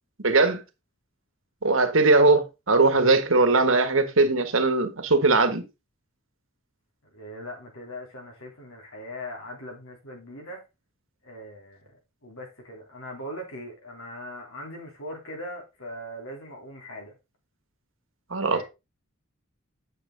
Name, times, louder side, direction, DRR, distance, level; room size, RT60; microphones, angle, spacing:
voice 1, 0.2-0.6 1.6-5.6 18.3-18.6, right 3 dB, 70° right, 1.6 m, -20 dB
voice 2, 7.0-10.6 11.2-11.9 12.2-17.1 18.5-18.6, left 1 dB, 80° left, 3.5 m, -40 dB
9.0 x 6.5 x 3.9 m
head